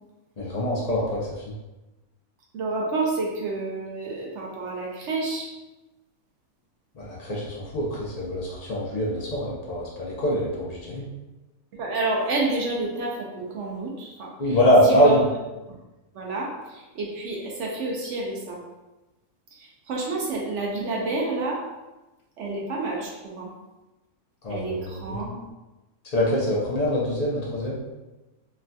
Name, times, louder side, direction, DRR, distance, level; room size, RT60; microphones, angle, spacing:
voice 1, 0.4-1.5 7.0-11.0 14.4-15.2 24.4-25.2 26.0-27.8, equal, 65° left, -6 dB, 0.4 m, -24 dB
voice 2, 2.5-5.5 11.7-14.6 14.8-15.2 16.1-18.6 19.5-21.6 22.4-23.5 24.5-25.4, right 2 dB, 65° right, -2 dB, 0.8 m, -29 dB
3.2 x 2.6 x 2.2 m, 1.1 s
omnidirectional pair, 1.5 m